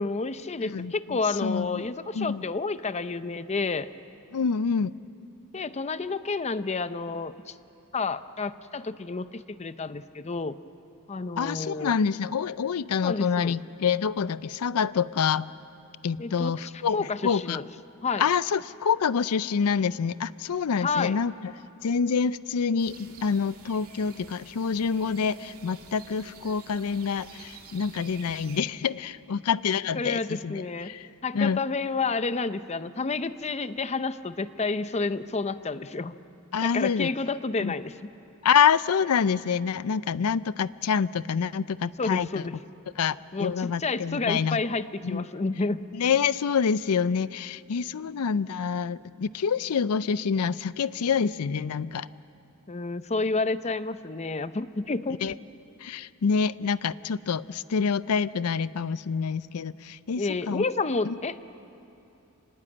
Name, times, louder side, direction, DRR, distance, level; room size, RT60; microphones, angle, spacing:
voice 1, 0.0-3.9 5.5-7.5 7.9-10.6 11.1-12.0 13.0-13.6 16.2-16.6 16.9-17.7 18.0-18.2 20.8-21.2 29.9-30.9 31.2-36.1 36.6-37.9 42.0-42.5 43.3-45.8 52.7-55.2 60.2-61.4, left 3 dB, 30° left, 13 dB, 0.6 m, -30 dB
voice 2, 0.6-1.9 2.1-2.4 4.3-4.9 11.4-15.5 16.0-17.6 18.2-21.5 21.8-31.1 31.3-31.6 36.5-37.1 37.6-37.7 38.4-42.4 43.0-44.6 45.0-45.2 45.9-52.1 55.2-55.3 55.8-60.6 61.0-61.2, left 6 dB, 85° left, 17 dB, 0.5 m, -27 dB
sound 1, 22.8-28.6, right 5 dB, 75° right, 2.5 m, -48 dB
26.0 x 19.5 x 8.7 m, 2.8 s
head